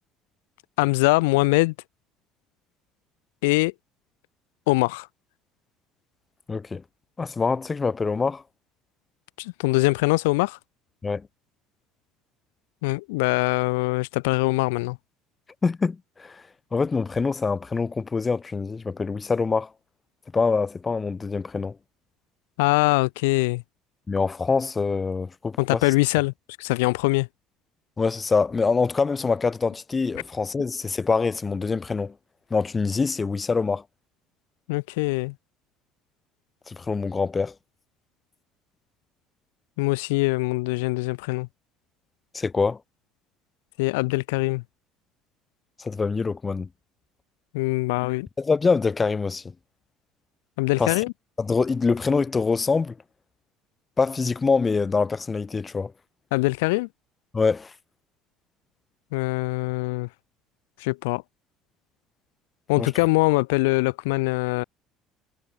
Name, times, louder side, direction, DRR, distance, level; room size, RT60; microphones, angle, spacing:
voice 1, 0.8-1.7 3.4-3.7 4.7-5.1 9.4-10.6 12.8-15.0 22.6-23.6 25.6-26.3 26.6-27.3 34.7-35.3 39.8-41.5 43.8-44.6 47.5-48.3 50.6-51.1 56.3-56.9 59.1-60.1 60.8-61.2 62.7-64.6, left 25 dB, 70° left, 3.0 m, -23 dB
voice 2, 6.5-6.8 7.2-8.4 11.0-11.3 15.6-16.4 16.7-19.7 20.3-21.8 24.1-25.8 28.0-32.1 32.5-33.8 36.7-37.5 42.3-42.8 45.8-46.7 48.4-49.4 50.8-51.0 51.4-52.9 54.0-55.9 57.3-57.7 62.8-62.9, left 4 dB, 25° left, 4.0 m, -24 dB
figure-of-eight pair, 60°, 0 cm